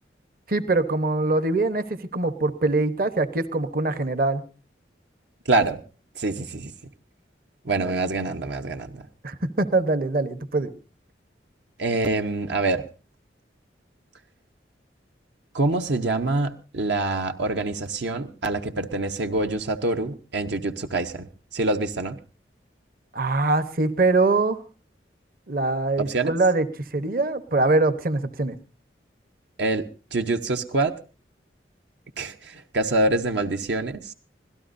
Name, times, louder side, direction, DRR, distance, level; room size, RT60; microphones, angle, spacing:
voice 1, 0.5-1.8 2.1-4.4 7.8-7.9 9.2-10.7 23.1-24.6 25.5-26.7 26.9-28.6, right 2 dB, 55° right, 12 dB, 1.0 m, -23 dB
voice 2, 5.5-5.8 6.2-6.7 7.6-9.0 11.8-12.8 15.5-22.2 26.1-26.3 29.6-29.8 30.1-30.9 32.2-34.1, right 2 dB, 75° right, 6 dB, 0.9 m, -25 dB
25.5 x 17.0 x 2.6 m, 0.35 s
head